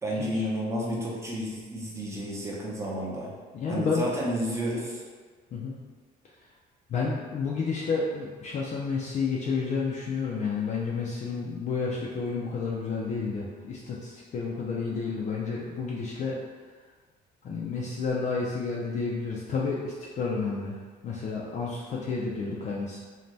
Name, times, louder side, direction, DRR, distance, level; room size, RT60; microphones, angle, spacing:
voice 1, 0.0-3.3 3.7-5.0, equal, 15° right, -4 dB, 0.7 m, -31 dB
voice 2, 3.5-4.1 5.5-5.8 6.9-16.4 17.4-20.8 21.0-23.0, left 4 dB, 45° left, -5 dB, 0.4 m, -30 dB
2.6 x 2.1 x 3.2 m, 1.5 s
cardioid pair, 110°, 17 cm